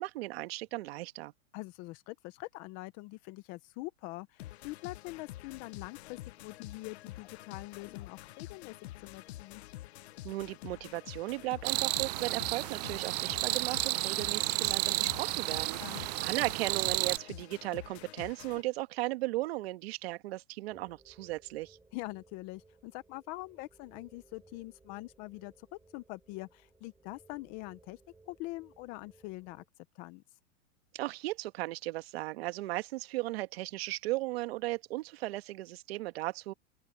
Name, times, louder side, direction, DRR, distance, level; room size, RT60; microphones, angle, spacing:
voice 1, 0.0-1.3 10.2-21.8 30.9-36.5, right 19 dB, 50° right, 1.6 m, -36 dB
voice 2, 1.5-9.6 15.8-16.1 21.9-28.0 28.3-29.6 29.9-30.2, left 21 dB, 25° left, 0.5 m, -44 dB
sound 1, 4.4-18.6, left 16 dB, 55° left, 0.8 m, -48 dB
sound 2, 11.6-17.2, right 19 dB, 35° right, 0.5 m, -32 dB
sound 3, 20.7-29.7, right 3 dB, 5° right, 4.4 m, -63 dB
open air
hypercardioid pair, 150°, 38 cm